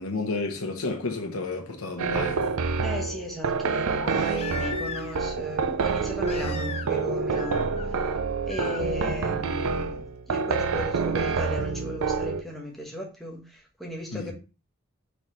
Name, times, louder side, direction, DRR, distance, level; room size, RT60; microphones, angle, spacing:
voice 1, 0.0-2.4 14.1-14.3, left 3 dB, 80° left, 0.9 m, -31 dB
Crying sobbing, 1.3-1.4 4.0-5.3 6.2-7.1 7.3-7.9 8.5-8.8 10.4-10.5, left 5 dB, 25° left, 0.4 m, -38 dB
sound 1, 2.0-12.4, right 5 dB, 80° right, 0.5 m, -27 dB
voice 2, 2.8-8.1 8.5-14.3, left 1 dB, ahead, 1.0 m, -36 dB
4.4 x 3.9 x 3.1 m
head